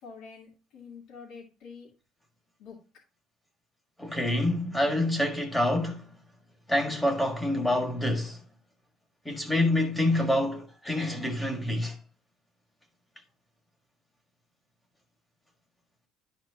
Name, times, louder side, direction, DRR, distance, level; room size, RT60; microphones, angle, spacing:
voice 1, 0.0-1.9 2.6-2.8, left 5 dB, 60° left, 2.5 m, -46 dB
voice 2, 4.0-6.1 6.7-8.4 9.2-12.0, left 1 dB, 5° left, 1.6 m, -27 dB
11.5 x 4.3 x 2.7 m
cardioid pair, 165°, 0 cm